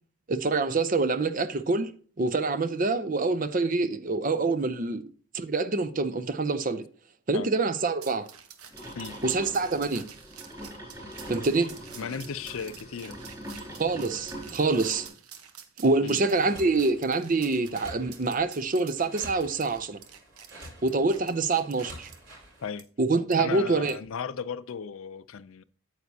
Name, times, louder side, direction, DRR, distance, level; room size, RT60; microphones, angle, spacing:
voice 1, 0.3-1.9 2.2-5.1 5.3-6.9 7.3-8.3 9.2-10.0 11.3-11.7 13.8-15.1 15.8-20.0 20.8-22.1 23.0-23.9, right 3 dB, 35° right, 0.5 m, -26 dB
sound 1, 8.0-22.2 22.8-22.9 23.3-23.4 23.9-24.1, right 8 dB, 90° right, 1.1 m, -48 dB
sound 2, 8.7-15.1, right 1 dB, 15° right, 4.5 m, -42 dB
voice 2, 12.0-13.2 16.0-16.2 22.6-22.9 23.4-25.6, left 6 dB, 70° left, 0.5 m, -36 dB
sound 3, 16.2-22.7, right 1 dB, 55° right, 4.7 m, -48 dB
9.2 x 8.1 x 2.7 m
head